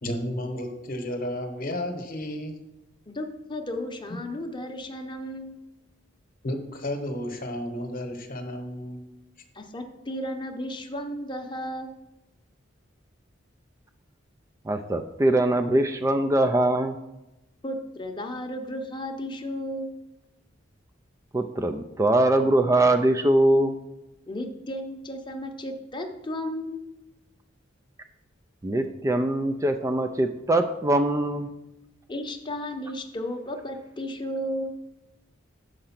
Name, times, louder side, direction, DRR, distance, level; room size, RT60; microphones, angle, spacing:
voice 1, 0.0-2.6 6.4-9.1, left 1 dB, 50° left, 6 dB, 1.0 m, -32 dB
voice 2, 3.1-5.6 9.5-11.9 17.6-19.9 24.3-26.8 32.1-34.7, left 1 dB, 25° left, 4 dB, 0.8 m, -34 dB
voice 3, 14.7-17.0 21.3-23.7 28.6-31.5, right 1 dB, 15° right, 6 dB, 0.3 m, -22 dB
6.5 x 4.8 x 5.8 m, 0.95 s
head